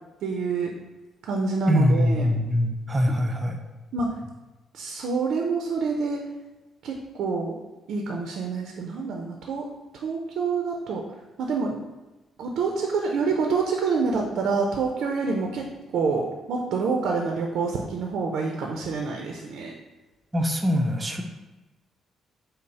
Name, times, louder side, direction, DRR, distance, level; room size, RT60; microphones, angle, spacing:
voice 1, 0.2-0.7 1.2-2.3 3.9-4.1 4.7-6.2 6.8-7.6 7.9-9.7 10.0-11.0 11.4-11.8 12.4-19.7, right 4 dB, 75° right, 1 dB, 0.5 m, -27 dB
voice 2, 1.7-3.6 20.3-21.2, equal, 20° right, 3 dB, 0.5 m, -23 dB
5.4 x 2.0 x 4.0 m, 1.1 s
cardioid pair, 90°, 0 cm